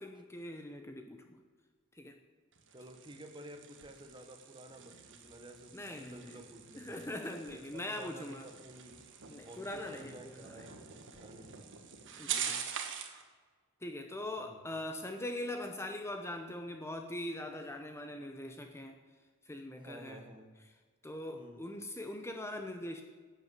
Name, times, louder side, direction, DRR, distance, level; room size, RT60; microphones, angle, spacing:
voice 1, 0.0-1.4 1.9-2.2 5.7-6.4 6.8-8.4 9.3-10.7 12.2-12.7 13.8-20.2 21.0-23.0, left 1 dB, 10° left, 5 dB, 0.8 m, -42 dB
sound 1, 2.5-13.2, right 8 dB, 60° right, 1.6 m, -44 dB
voice 2, 2.7-7.1 7.5-9.0 9.4-10.8 11.1-11.7 14.4-14.6 19.8-20.5 21.3-21.6, right 1 dB, 20° right, 6 dB, 1.4 m, -52 dB
11.5 x 8.4 x 9.2 m, 1.5 s
head